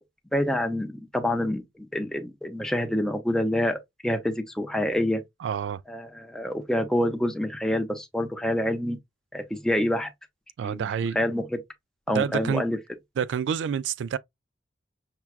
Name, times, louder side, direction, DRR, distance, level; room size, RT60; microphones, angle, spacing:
voice 1, 0.3-5.2 5.9-9.0 9.3-10.1 10.6-10.9 11.1-11.6 12.1-12.8, left 1 dB, 5° left, 0.6 m, -27 dB
voice 2, 5.4-5.8 10.6-11.2 12.1-12.7 13.2-14.2, right 7 dB, 90° right, 0.3 m, -28 dB
5.8 x 2.3 x 2.3 m
head